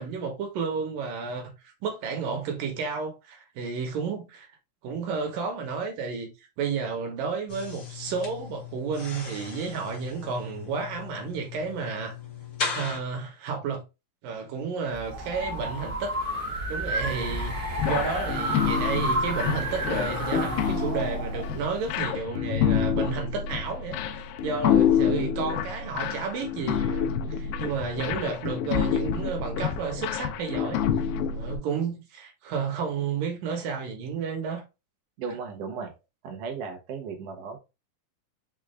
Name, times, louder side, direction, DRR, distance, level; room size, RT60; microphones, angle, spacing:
voice 1, 0.0-1.5 1.8-4.5 4.8-6.3 6.6-12.2 12.7-13.8 14.2-16.1 16.4-17.6 17.8-30.8 31.3-34.6, right 5 dB, 70° right, 2.4 m, -32 dB
sound 1, 7.5-13.0, left 5 dB, 60° left, 1.2 m, -37 dB
sound 2, 14.9-22.1, right 1 dB, 45° right, 1.2 m, -31 dB
sound 3, 17.8-31.6, left 8 dB, 80° left, 2.2 m, -27 dB
voice 2, 35.2-35.9 36.2-37.6, right 5 dB, 85° right, 1.4 m, -35 dB
6.3 x 2.4 x 3.2 m
omnidirectional pair, 4.5 m